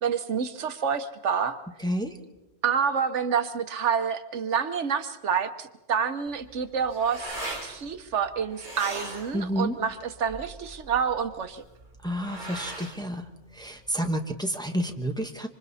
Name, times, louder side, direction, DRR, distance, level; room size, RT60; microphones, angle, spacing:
voice 1, 0.0-1.6 2.6-11.6, right 7 dB, 80° right, 10 dB, 1.3 m, -28 dB
voice 2, 1.8-2.1 9.3-9.8 12.0-13.2 13.5-15.5, equal, 5° left, 4 dB, 1.2 m, -29 dB
sound 1, 6.3-14.2, right 2 dB, 45° right, 3.3 m, -40 dB
26.5 x 25.5 x 4.2 m, 1.0 s
omnidirectional pair, 1.2 m